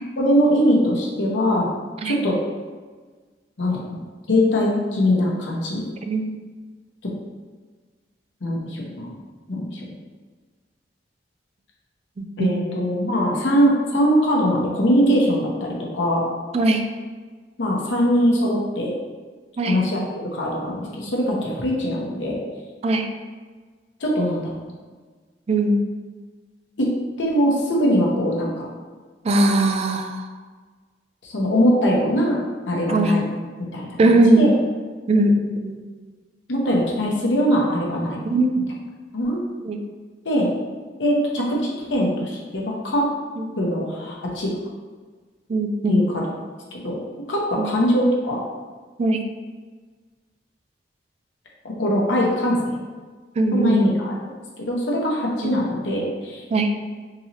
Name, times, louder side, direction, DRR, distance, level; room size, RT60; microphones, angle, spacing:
voice 1, 0.2-1.7 2.0-2.3 3.6-4.0 4.3-5.8 7.0-7.1 8.4-9.2 9.5-9.8 12.4-16.3 17.6-18.9 19.6-20.0 20.3-22.4 24.0-24.5 26.8-26.9 27.2-28.7 31.2-32.4 32.7-33.3 33.6-34.5 36.5-38.2 39.1-39.4 40.2-40.5 41.0-43.1 43.6-44.5 45.9-46.3 46.7-47.0 47.3-48.4 51.6-52.8 53.5-54.1 54.6-56.4, equal, 85° left, -3 dB, 0.8 m, -21 dB
voice 2, 12.2-12.6 16.5-16.8 19.6-19.8 22.8-23.1 25.5-25.8 29.2-30.3 32.9-33.2 34.0-34.5 35.1-35.8 38.2-38.6 39.6-39.8 43.4-43.5 45.5-46.1 47.6-47.7 49.0-49.2 53.4-53.9 55.4-55.5 56.5-56.7, right 2 dB, 35° right, 5 dB, 0.3 m, -20 dB
3.8 x 2.9 x 2.8 m, 1.4 s
head